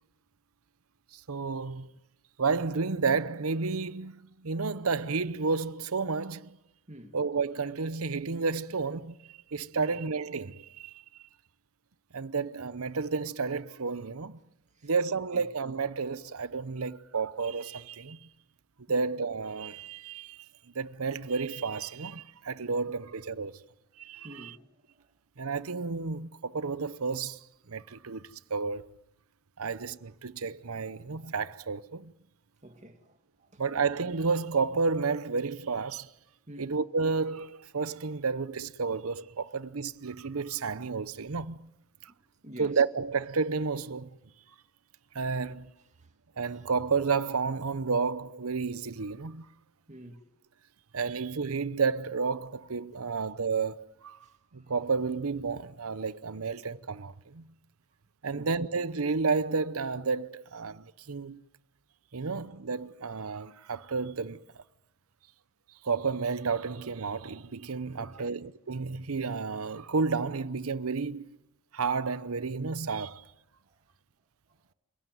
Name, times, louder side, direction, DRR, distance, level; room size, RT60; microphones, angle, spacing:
voice 1, 1.1-1.9 2.4-6.6 7.1-11.0 12.1-14.4 14.8-18.3 18.9-20.5 20.7-23.6 24.0-24.5 25.4-27.4 27.7-28.9 29.6-32.1 33.6-36.1 36.6-41.7 42.0-42.1 42.6-44.2 45.1-45.7 46.4-49.5 50.9-54.2 54.5-57.5 58.2-61.4 62.1-64.6 65.8-71.4 71.7-73.2, right 4 dB, 90° right, 0.8 m, -31 dB
voice 2, 24.2-25.1 32.6-33.6 36.5-36.8 42.1-42.2 42.4-42.8 46.0-46.1 46.5-46.6 49.9-50.2 54.2-54.7 58.2-58.5 68.0-68.4 73.7-73.8, right 1 dB, 35° right, 2.4 m, -48 dB
29.0 x 17.5 x 9.4 m
head